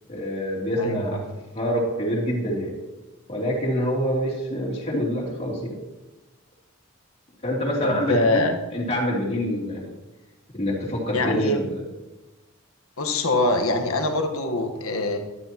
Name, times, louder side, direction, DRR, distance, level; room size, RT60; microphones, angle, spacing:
voice 1, 0.1-2.7 3.3-5.7 7.4-9.9 10.5-11.8, equal, 30° left, -4 dB, 3.0 m, -26 dB
voice 2, 7.8-8.5 11.1-11.6 13.0-15.2, left 2 dB, 80° left, 3 dB, 1.3 m, -24 dB
13.5 x 12.0 x 3.0 m, 1.1 s
head